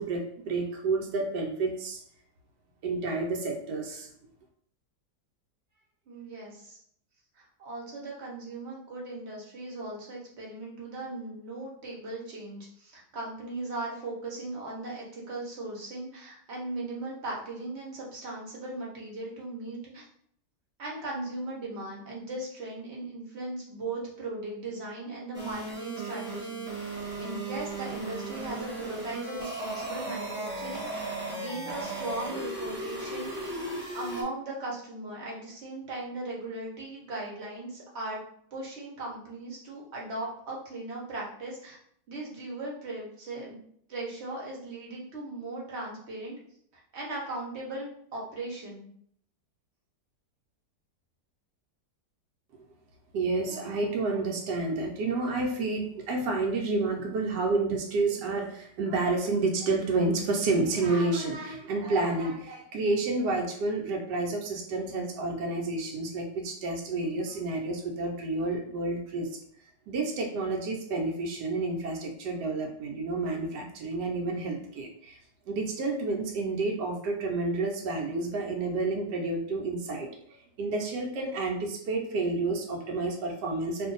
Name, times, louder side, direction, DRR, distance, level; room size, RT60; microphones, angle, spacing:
voice 1, 0.0-2.0 2.8-4.1 52.5-52.6 53.1-69.3 69.9-75.2 75.5-83.9, right 3 dB, 85° right, 1 dB, 1.2 m, -30 dB
voice 2, 6.1-6.8 7.3-20.0 20.8-26.9 27.2-33.5 33.9-38.2 38.5-41.8 42.1-43.6 43.9-46.4 46.7-48.9, right 2 dB, 45° right, -3 dB, 1.0 m, -38 dB
sound 1, 25.3-34.2, right 2 dB, 10° right, 0.8 m, -36 dB
2.7 x 2.5 x 3.8 m, 0.65 s
omnidirectional pair, 1.8 m